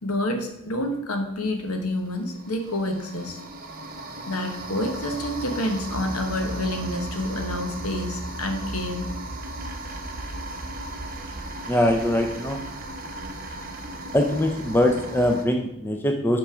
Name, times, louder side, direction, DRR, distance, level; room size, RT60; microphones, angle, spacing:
voice 1, 0.0-3.4 4.3-9.1, left 1 dB, 80° left, 4 dB, 1.1 m, -28 dB
sound 1, 1.4-1.5 2.1-15.5, right 1 dB, 40° right, 0.8 m, -36 dB
voice 2, 11.7-12.6 14.1-16.4, left 1 dB, 10° left, 3 dB, 0.5 m, -22 dB
5.7 x 5.2 x 4.9 m, 0.85 s
head